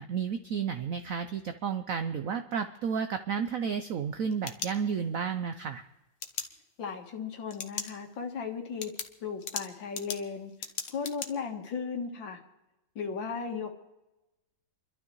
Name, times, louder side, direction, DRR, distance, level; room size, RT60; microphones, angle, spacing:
voice 1, 0.0-5.8, right 6 dB, 75° right, 8 dB, 0.7 m, -32 dB
sound 1, 4.1-5.3 6.2-6.5 7.5-7.9 8.3-8.4 8.8-11.3, left 6 dB, 45° left, 0.9 m, -38 dB
voice 2, 6.8-8.9 9.2-12.4 13.0-13.8, left 5 dB, 75° left, 4 dB, 2.1 m, -36 dB
30.0 x 12.0 x 3.1 m, 1.0 s
omnidirectional pair, 2.1 m